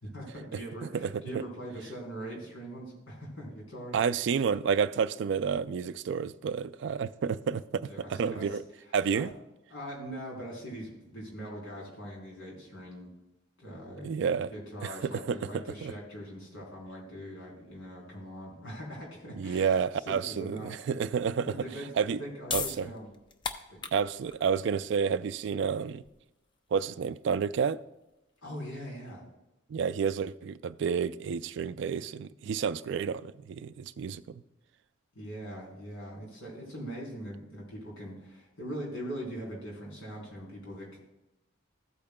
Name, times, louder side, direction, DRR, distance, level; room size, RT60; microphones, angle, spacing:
voice 1, 0.0-4.0 7.9-8.5 9.1-9.2 9.7-13.1 13.6-14.2 14.5-20.7 21.5-23.1 23.7-23.8 28.4-29.2 35.1-41.0, right 1 dB, 80° left, 3.6 m, -41 dB
voice 2, 3.9-8.6 8.9-9.3 14.0-14.5 14.8-15.4 15.8-15.9 19.3-21.5 22.0-22.2 22.5-22.9 23.9-26.0 26.7-27.8 29.7-34.4, right 6 dB, 60° right, 0.3 m, -30 dB
sound 1, 22.0-28.8, left 5 dB, 25° left, 0.5 m, -40 dB
14.5 x 8.6 x 2.2 m
head